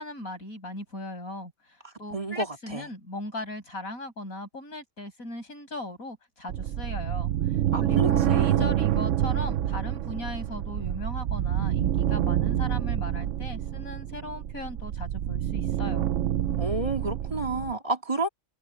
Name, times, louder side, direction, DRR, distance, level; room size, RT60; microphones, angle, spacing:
voice 1, 0.0-7.3 7.8-16.1, left 1 dB, 85° left, 8.5 m, -38 dB
voice 2, 1.8-2.9 7.7-8.7 16.6-18.3, right 2 dB, 25° right, 2.6 m, -31 dB
sound 1, 6.5-17.7, right 11 dB, 65° right, 0.9 m, -27 dB
omnidirectional pair, 1.4 m